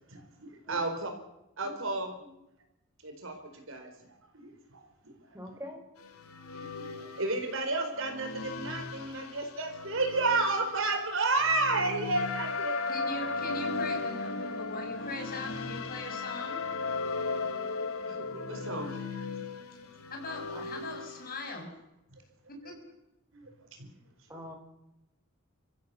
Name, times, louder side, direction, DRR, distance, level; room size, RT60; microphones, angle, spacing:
voice 1, 0.1-1.1 1.6-2.1 3.0-3.9 4.3-5.1 6.6-12.8 18.1-19.9 22.6-22.7 23.3-23.5 23.8-23.9, right 3 dB, 65° right, 5 dB, 4.6 m, -32 dB
voice 2, 0.6-1.0 1.6-1.9 2.2-2.3 5.3-5.8 20.5-20.7 24.3-24.5, left 1 dB, 15° right, 3 dB, 4.6 m, -45 dB
sound 1, 6.0-21.6, left 4 dB, 85° left, 2.7 m, -43 dB
sound 2, 12.1-18.9, left 4 dB, 65° left, 1.4 m, -34 dB
voice 3, 12.9-16.6 20.1-21.7 22.5-22.7, left 2 dB, 45° left, 2 dB, 6.2 m, -40 dB
29.5 x 15.5 x 7.0 m, 0.91 s
head